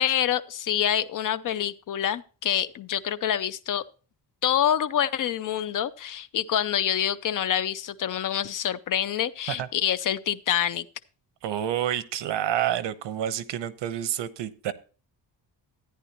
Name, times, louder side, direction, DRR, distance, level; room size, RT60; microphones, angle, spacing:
voice 1, 0.0-3.8 4.4-10.9, left 10 dB, 50° left, 0.6 m, -26 dB
voice 2, 11.4-14.7, right 11 dB, 90° right, 1.1 m, -28 dB
13.5 x 10.0 x 2.9 m
wide cardioid pair, 175°, 42 cm